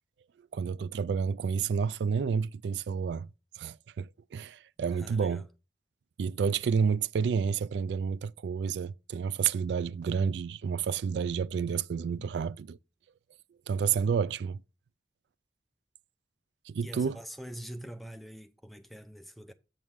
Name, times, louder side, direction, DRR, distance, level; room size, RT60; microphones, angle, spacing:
voice 1, 0.5-3.3 3.6-5.4 6.2-12.8 13.7-14.6 16.7-17.2, right 6 dB, 80° right, 0.3 m, -30 dB
voice 2, 4.9-5.5 12.2-12.3 16.8-19.5, equal, ahead, 0.5 m, -44 dB
7.5 x 6.2 x 3.6 m
head